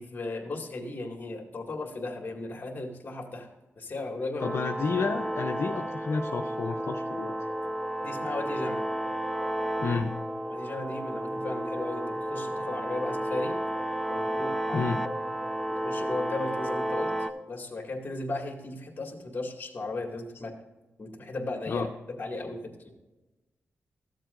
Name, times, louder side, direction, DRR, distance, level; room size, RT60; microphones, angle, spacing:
voice 1, 0.0-3.5 3.8-4.6 8.0-8.8 10.5-13.6 14.1-14.9 15.7-17.1 17.5-20.5 21.0-21.9 22.2-22.9, left 2 dB, 40° left, 1 dB, 2.1 m, -36 dB
voice 2, 4.4-7.3 9.8-10.1 14.7-15.0 21.7-21.9, left 5 dB, 65° left, 2 dB, 0.7 m, -30 dB
sound 1, 4.4-17.3, right 1 dB, 5° left, 0.7 m, -32 dB
14.0 x 7.5 x 2.5 m, 1.1 s
cardioid pair, 85°, 5 cm